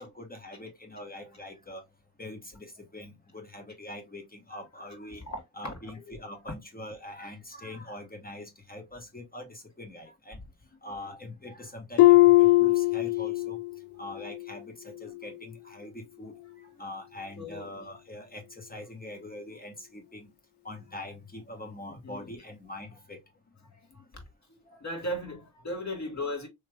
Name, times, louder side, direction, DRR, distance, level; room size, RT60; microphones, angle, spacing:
voice 1, 0.0-1.8 2.2-5.3 5.5-10.4 10.8-13.6 14.0-16.3 16.8-20.3 20.6-23.2 24.7-24.8, left 1 dB, 20° left, 1.1 m, -43 dB
voice 2, 5.3-5.8 17.4-17.7 21.9-22.3 23.7-24.1 24.7-26.5, left 1 dB, 35° left, 1.8 m, -36 dB
Harp, 12.0-13.7 14.1-14.5 15.1-15.2, left 20 dB, 60° left, 0.5 m, -20 dB
3.2 x 3.1 x 2.3 m
hypercardioid pair, 45°, 48 cm